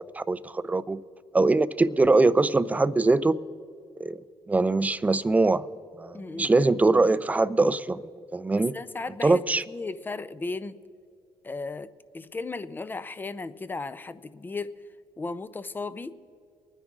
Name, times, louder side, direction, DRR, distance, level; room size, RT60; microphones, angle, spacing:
voice 1, 0.1-1.0 1.3-3.3 4.0-4.2 4.5-5.7 6.0-8.7 9.2-9.6, right 3 dB, 15° right, 0.5 m, -22 dB
voice 2, 6.1-6.5 8.6-9.4 9.7-10.8 11.4-11.9 12.1-14.7 15.2-16.2, left 3 dB, 20° left, 0.6 m, -35 dB
24.0 x 9.9 x 3.7 m
cardioid pair, 90°, 9 cm